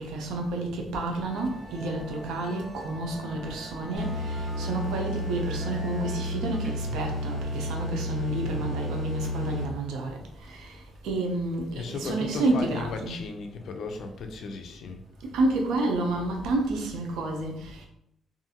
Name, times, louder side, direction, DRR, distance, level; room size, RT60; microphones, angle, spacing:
voice 1, 0.0-10.8 11.0-13.2 15.2-17.9, right 2 dB, 90° right, 2 dB, 0.6 m, -30 dB
Musical instrument, 1.2-16.7, right 1 dB, 15° right, 0.6 m, -45 dB
sound 1, 4.0-9.9, equal, 70° right, 1.3 m, -32 dB
voice 2, 11.7-15.0, left 4 dB, 65° left, 6 dB, 0.4 m, -36 dB
2.6 x 2.4 x 2.7 m, 0.76 s
cardioid pair, 90°, 0 cm